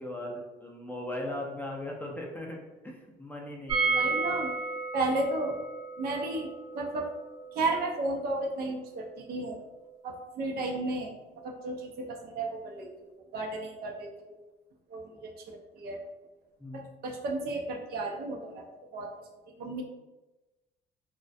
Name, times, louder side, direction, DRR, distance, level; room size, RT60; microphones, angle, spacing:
voice 1, 0.0-2.6 2.8-4.3 16.6-16.8, left 1 dB, 10° left, -1 dB, 0.4 m, -38 dB
sound 1, 3.7-9.5 9.7-9.8 10.1-10.2, right 4 dB, 25° right, 0.8 m, -33 dB
voice 2, 3.9-4.5 4.9-5.6 6.0-7.1 7.5-9.6 10.0-11.1 11.4-14.4 14.9-16.0 16.7-18.7 18.9-19.1 19.6-19.8, right 2 dB, 65° right, 1 dB, 0.5 m, -33 dB
2.3 x 2.1 x 2.5 m, 1.1 s
cardioid pair, 110°, 17 cm